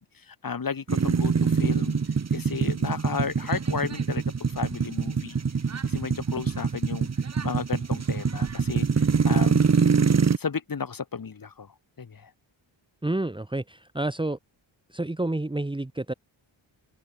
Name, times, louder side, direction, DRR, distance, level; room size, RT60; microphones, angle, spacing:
voice 1, 0.0-5.4 5.8-9.6 10.4-12.3, left 6 dB, 45° left, 7.5 m, -34 dB
sound 1, 0.9-10.4, right 5 dB, 30° right, 1.9 m, -24 dB
voice 2, 13.0-14.4 14.9-16.1, right 2 dB, 10° right, 1.9 m, -29 dB
wide cardioid pair, 150°, 48 cm